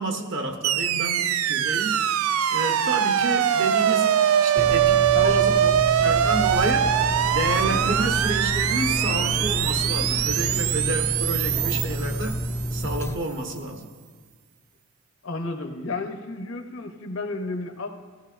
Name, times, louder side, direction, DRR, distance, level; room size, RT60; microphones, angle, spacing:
voice 1, 0.0-2.0 2.5-6.9 7.3-12.4 12.7-13.9, right 2 dB, 60° right, 3 dB, 1.1 m, -30 dB
sound 1, 0.6-12.9, right 10 dB, 85° right, 0.4 m, -23 dB
sound 2, 4.6-13.2, equal, 10° left, 0.3 m, -29 dB
voice 2, 5.1-5.4 15.2-17.9, left 3 dB, 75° left, 3 dB, 0.8 m, -31 dB
18.5 x 14.5 x 2.5 m, 1.5 s
head